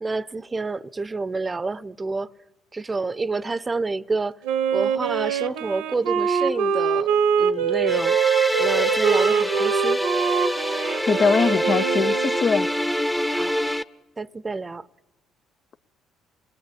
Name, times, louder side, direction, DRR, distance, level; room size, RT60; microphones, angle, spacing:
voice 1, 0.0-2.3 2.7-4.4 4.7-10.0 13.3-13.5 14.2-14.9, right 3 dB, 25° right, 0.8 m, -29 dB
Wind instrument woodwind instrument, 4.4-12.6, right 7 dB, 75° right, 1.0 m, -23 dB
sound 1, 7.9-13.8, equal, 5° left, 1.0 m, -25 dB
voice 2, 11.1-12.7, left 5 dB, 45° left, 0.8 m, -21 dB
27.5 x 20.0 x 8.5 m
hypercardioid pair, 50°, 0 cm